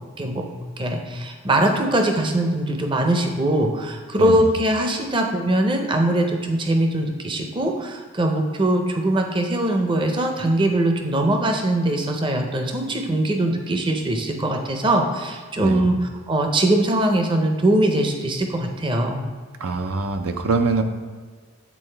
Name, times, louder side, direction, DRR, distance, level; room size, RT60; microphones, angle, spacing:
voice 1, 0.8-16.0 16.3-19.2, right 1 dB, 25° right, 4 dB, 0.5 m, -21 dB
voice 2, 4.2-4.5 15.6-15.9 19.6-20.8, right 3 dB, 85° right, 7 dB, 0.5 m, -24 dB
8.4 x 3.9 x 3.3 m, 1.5 s
head